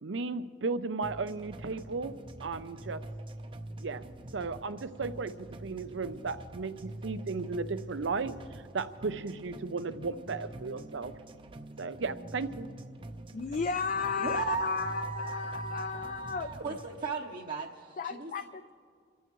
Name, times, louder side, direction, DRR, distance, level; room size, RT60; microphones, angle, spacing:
voice 1, 0.0-3.0 3.8-4.0 4.3-11.1 11.8-12.7, right 4 dB, 80° right, 12 dB, 0.6 m, -35 dB
sound 1, 1.0-17.0, right 1 dB, 30° right, 0.6 m, -45 dB
voice 2, 13.3-16.5 18.0-18.7, left 5 dB, 45° left, 10 dB, 0.4 m, -33 dB
voice 3, 14.2-18.3, right 4 dB, 45° right, -2 dB, 0.8 m, -37 dB
27.5 x 15.0 x 3.1 m, 2.2 s
head